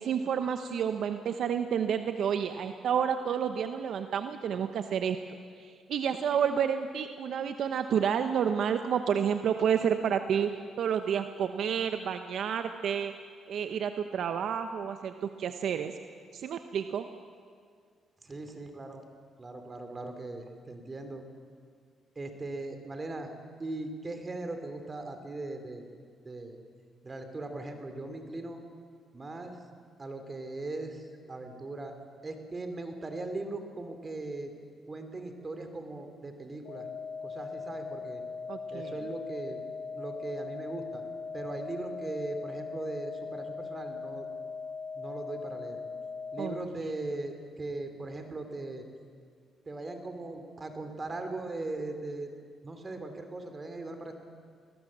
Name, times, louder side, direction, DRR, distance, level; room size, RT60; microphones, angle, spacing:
voice 1, 0.0-10.5 10.8-13.1 13.5-15.9 16.3-17.1 38.5-38.9 46.4-46.8, right 8 dB, 70° right, 8 dB, 0.9 m, -30 dB
voice 2, 18.2-19.0 19.4-21.2 22.1-23.3 23.6-25.8 26.2-26.6 27.0-28.6 29.1-29.6 30.0-31.9 32.2-34.5 34.9-36.9 37.2-38.2 38.7-39.6 39.9-41.0 41.3-44.3 44.9-45.8 46.3-48.8 49.7-52.3 52.6-54.1, right 2 dB, 30° right, 6 dB, 2.7 m, -39 dB
sound 1, 36.6-46.7, left 4 dB, 75° left, 1.4 m, -40 dB
21.0 x 20.0 x 7.5 m, 2.1 s
cardioid pair, 90°, 0 cm